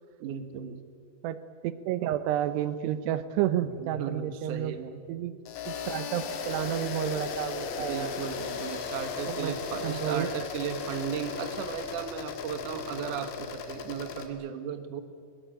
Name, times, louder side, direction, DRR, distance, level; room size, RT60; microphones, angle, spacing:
voice 1, 0.2-0.9 3.6-5.3 7.8-15.0, right 8 dB, 60° right, 8 dB, 2.6 m, -36 dB
voice 2, 1.2-4.7 5.1-5.4 5.7-8.1 9.3-9.6 9.8-10.3, right 11 dB, 85° right, 12 dB, 3.0 m, -31 dB
sound 1, 5.5-14.3, left 5 dB, 90° left, 4.0 m, -36 dB
23.0 x 21.0 x 9.2 m, 2.1 s
omnidirectional pair, 4.8 m